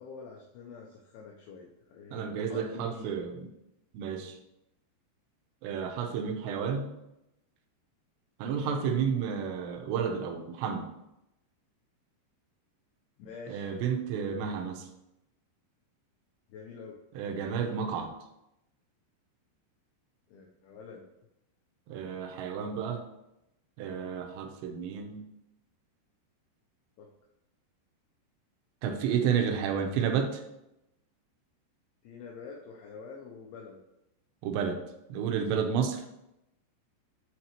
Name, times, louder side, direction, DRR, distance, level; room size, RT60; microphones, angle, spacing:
voice 1, 0.0-3.2 8.5-9.3 13.2-13.7 16.5-16.9 20.3-21.0 27.0-27.1 32.0-33.8, left 5 dB, 80° left, -2 dB, 2.3 m, -46 dB
voice 2, 2.1-3.5 3.9-4.4 5.6-6.9 8.4-10.9 13.5-14.9 17.2-18.1 21.9-23.1 23.8-25.2 28.8-30.4 34.4-34.8 35.1-36.0, right 7 dB, 80° right, 3 dB, 2.9 m, -31 dB
9.1 x 3.7 x 2.9 m, 0.87 s
omnidirectional pair, 5.1 m